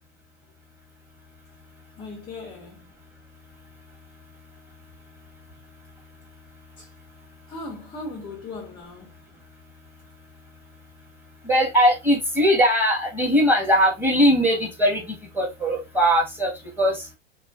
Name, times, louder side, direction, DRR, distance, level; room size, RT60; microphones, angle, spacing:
voice 1, 2.0-2.9 6.8-6.9 7.5-9.1, left 2 dB, 15° left, 0.4 m, -38 dB
voice 2, 11.4-16.5 16.8-17.0, equal, 5° right, 0.9 m, -20 dB
2.5 x 2.3 x 2.2 m
hypercardioid pair, 120°, 36 cm